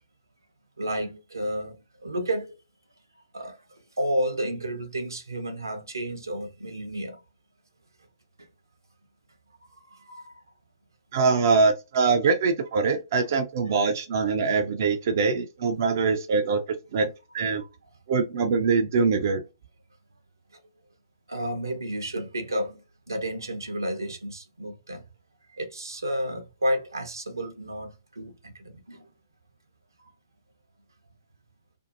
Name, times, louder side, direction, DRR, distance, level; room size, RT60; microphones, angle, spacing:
voice 1, 0.8-2.6 3.3-3.6 4.0-7.2 9.7-10.3 13.7-13.8 15.0-15.2 17.6-17.7 18.4-18.5 21.3-22.8 23.1-25.0 25.5-29.0, equal, 80° right, 0.7 m, -31 dB
voice 2, 11.1-16.6 16.9-17.6 18.1-19.4, right 4 dB, 50° right, 0.4 m, -23 dB
2.6 x 2.4 x 2.5 m
figure-of-eight pair, 120°, 2 cm